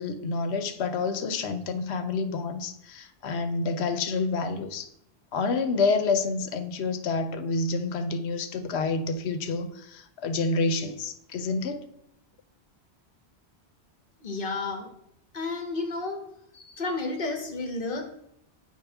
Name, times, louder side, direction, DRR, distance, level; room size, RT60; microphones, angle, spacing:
voice 1, 0.0-4.9 5.3-11.8, left 3 dB, 90° left, 9 dB, 0.9 m, -28 dB
voice 2, 14.2-14.9 15.3-16.2 16.5-18.0, left 3 dB, 55° left, 3 dB, 1.2 m, -31 dB
8.2 x 4.5 x 3.4 m, 0.74 s
omnidirectional pair, 1.1 m